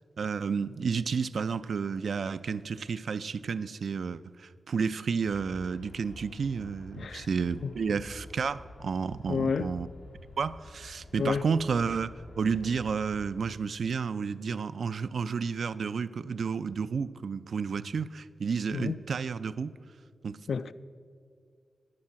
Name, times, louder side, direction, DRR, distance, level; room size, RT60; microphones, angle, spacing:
voice 1, 0.2-9.9 10.4-19.7 20.2-20.4, right 5 dB, 65° right, 0.3 m, -31 dB
Aircraft, 5.2-13.5, left 2 dB, 90° left, 0.9 m, -49 dB
voice 2, 7.0-7.3 7.6-7.7 9.3-9.7 11.2-11.4 18.7-19.0 20.5-20.7, left 5 dB, 75° left, 0.3 m, -30 dB
10.5 x 9.8 x 5.7 m
wide cardioid pair, 150°, 0 cm